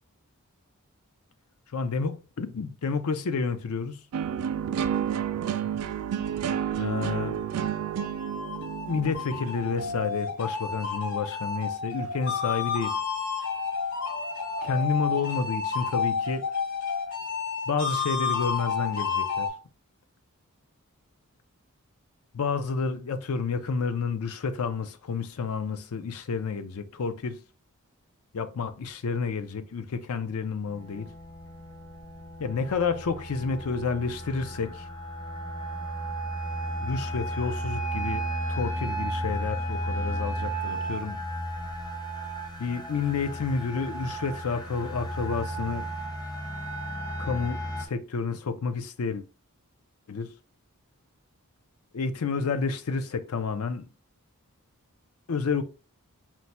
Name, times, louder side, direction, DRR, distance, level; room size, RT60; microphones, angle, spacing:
voice 1, 1.7-4.0 6.8-7.4 8.9-13.0 14.6-16.4 17.7-19.5 22.3-27.4 28.3-31.1 32.4-34.9 36.8-41.2 42.6-45.9 47.2-49.2 50.1-50.3 51.9-53.9 55.3-55.6, left 5 dB, 75° left, 0.5 m, -30 dB
sound 1, 4.1-10.1, right 9 dB, 85° right, 0.4 m, -30 dB
sound 2, 7.7-19.5, left 5 dB, 50° left, 2.2 m, -31 dB
sound 3, 30.7-47.8, right 1 dB, 20° left, 0.6 m, -34 dB
4.4 x 2.2 x 4.1 m
head